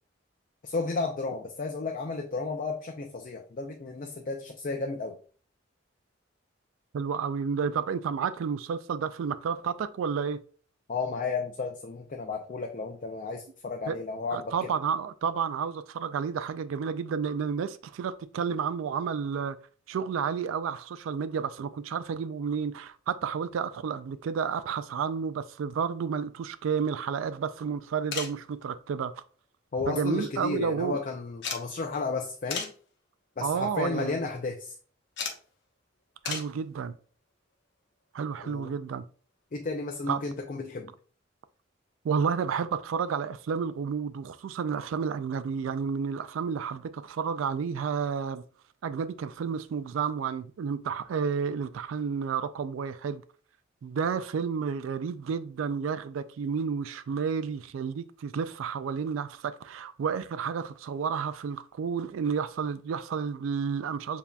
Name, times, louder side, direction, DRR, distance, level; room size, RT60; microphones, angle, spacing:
voice 1, 0.6-5.2 10.9-14.7 29.7-32.7 33.4-34.7 38.4-38.7 39.5-40.9, left 3 dB, 45° left, 0.4 m, -33 dB
voice 2, 6.9-10.4 13.9-14.0 14.3-19.6 19.9-29.2 29.9-31.0 33.4-34.1 36.2-37.0 38.1-39.0 40.1-40.2 42.0-48.4 48.8-53.2 53.8-64.2, right 6 dB, 90° right, 0.3 m, -31 dB
sound 1, 28.1-28.4 29.7-30.3 30.6-30.7 31.4-31.7 32.5-32.8 33.5-33.7 35.2-35.4 36.2-36.5 38.2-38.3 39.7-39.8 40.0-40.1, left 5 dB, 65° left, 0.9 m, -35 dB
6.9 x 2.8 x 2.3 m
head